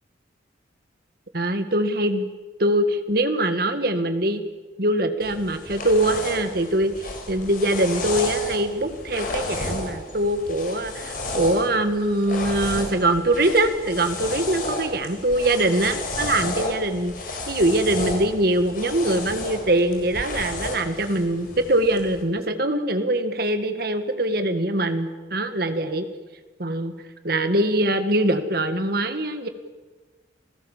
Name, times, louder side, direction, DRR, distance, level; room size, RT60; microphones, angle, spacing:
voice 1, 1.3-2.3 2.6-4.4 4.8-6.9 7.3-26.1 26.6-26.9 27.2-29.5, right 1 dB, 50° right, 9 dB, 1.8 m, -23 dB
sound 1, 5.2-22.2, left 2 dB, 45° left, 4.3 m, -33 dB
28.5 x 17.0 x 7.4 m, 1.3 s
head